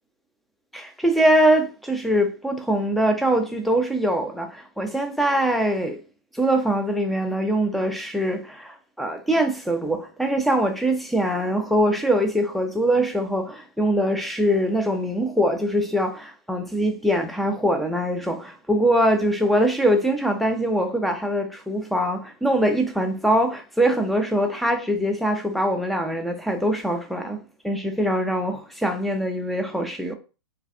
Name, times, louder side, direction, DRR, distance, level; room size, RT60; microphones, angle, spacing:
voice 1, 0.7-6.0 6.3-30.1, right 1 dB, ahead, 0.3 m, -23 dB
2.4 x 2.3 x 2.5 m
hypercardioid pair, 115°, 13 cm